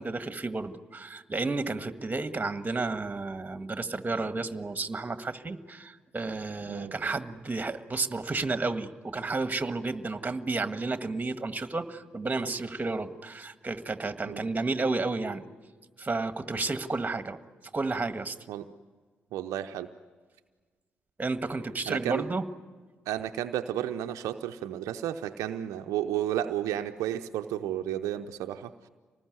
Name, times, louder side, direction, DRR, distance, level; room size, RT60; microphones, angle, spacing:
voice 1, 0.0-15.4 16.0-17.4 17.7-18.4 21.2-22.4, right 3 dB, 30° right, 9 dB, 1.8 m, -32 dB
voice 2, 19.3-19.9 21.8-22.3 23.1-28.9, right 11 dB, 75° right, 7 dB, 0.7 m, -32 dB
25.5 x 20.0 x 9.5 m, 1.4 s
hypercardioid pair, 40°, 6 cm